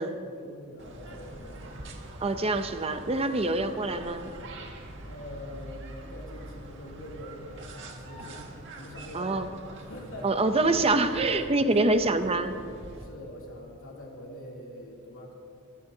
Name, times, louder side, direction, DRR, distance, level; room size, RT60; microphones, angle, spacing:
voice 1, 0.0-1.6 5.0-10.5 11.7-12.0 13.0-15.3, equal, 65° left, -2 dB, 3.1 m, -44 dB
sound 1, 0.8-13.0, right 1 dB, 60° right, 1.8 m, -44 dB
voice 2, 2.2-4.3 9.1-9.5 10.2-12.6, right 2 dB, 30° right, 8 dB, 0.6 m, -25 dB
25.0 x 16.0 x 2.8 m, 2.5 s
head